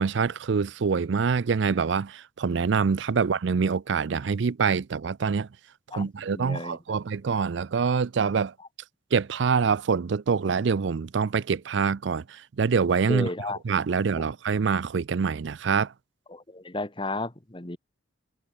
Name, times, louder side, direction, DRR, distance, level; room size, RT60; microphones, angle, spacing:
voice 1, 0.0-5.5 5.9-8.5 9.1-13.3 13.6-15.9, right 5 dB, 60° right, 0.4 m, -25 dB
voice 2, 5.9-6.8 13.1-13.6 14.2-14.3 16.3-17.8, left 2 dB, 25° left, 1.4 m, -33 dB
head